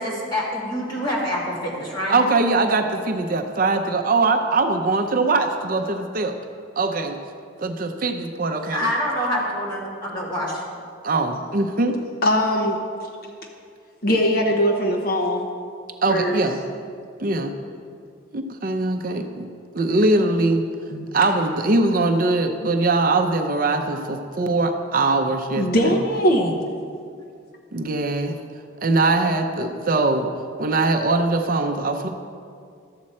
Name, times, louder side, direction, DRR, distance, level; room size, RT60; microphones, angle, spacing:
voice 1, 0.0-2.2 8.7-10.6, equal, 20° left, -5 dB, 2.1 m, -26 dB
voice 2, 2.1-6.4 6.8-7.2 7.6-8.9 11.0-11.9 16.0-16.6 17.2-17.5 18.3-19.5 19.7-20.6 20.9-26.0 27.7-28.4 28.8-30.3 30.6-32.1, right 2 dB, 45° right, 6 dB, 0.5 m, -21 dB
voice 3, 12.2-12.8 14.0-15.5 16.1-16.4 25.6-26.6, equal, 50° left, 2 dB, 0.8 m, -20 dB
12.5 x 7.6 x 4.2 m, 2.3 s
head